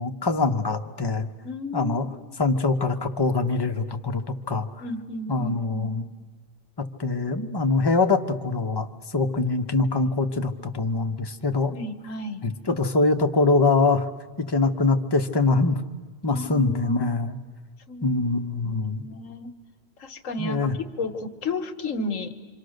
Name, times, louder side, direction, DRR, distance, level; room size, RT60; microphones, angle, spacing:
voice 1, 0.0-1.3 1.7-4.2 4.5-4.7 5.3-6.1 7.0-11.7 12.4-14.1 14.4-15.8 16.2-17.4 18.0-19.0 20.4-20.8, left 3 dB, 20° left, 6 dB, 1.0 m, -23 dB
voice 2, 1.4-2.0 2.3-2.4 4.8-5.9 11.7-12.5 16.3-17.1 17.9-18.2 18.6-19.5 20.0-22.3, left 2 dB, 90° left, 8 dB, 1.7 m, -33 dB
27.0 x 25.5 x 6.5 m, 1.4 s
omnidirectional pair, 1.3 m